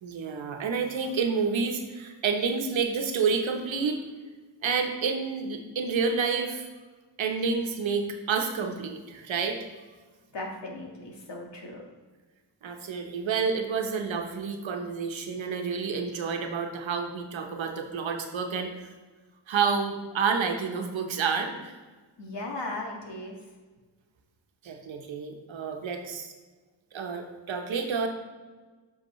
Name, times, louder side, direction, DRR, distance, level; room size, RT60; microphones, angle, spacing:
voice 1, 0.0-4.0 4.6-6.7 7.2-9.6 12.6-18.7 19.5-21.7 24.6-26.3 26.9-28.1, right 5 dB, 80° right, 4 dB, 1.1 m, -29 dB
voice 2, 10.3-11.8 22.2-23.4, left 2 dB, 65° left, 0 dB, 1.8 m, -37 dB
7.9 x 5.7 x 3.1 m, 1.3 s
cardioid pair, 65°, 46 cm